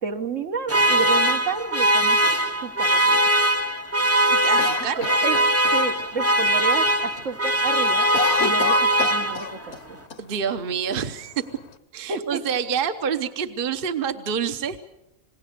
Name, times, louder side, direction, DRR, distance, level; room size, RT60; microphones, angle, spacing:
voice 1, 0.0-2.2 2.6-3.2 5.0-5.4 5.7-8.1 8.4-10.0 12.1-12.4, right 5 dB, 65° right, 6 dB, 1.6 m, -30 dB
sound 1, 0.7-9.7, right 1 dB, 15° right, 0.8 m, -21 dB
voice 2, 4.2-5.1 10.2-11.4 11.9-14.8, right 7 dB, 45° right, 8 dB, 1.1 m, -27 dB
Cough, 4.6-6.1 6.4-6.5 6.9-7.3 7.6-9.8 10.1-10.2 10.9-11.7, left 5 dB, 55° left, 1.3 m, -30 dB
27.5 x 20.0 x 6.7 m, 0.84 s
omnidirectional pair, 1.4 m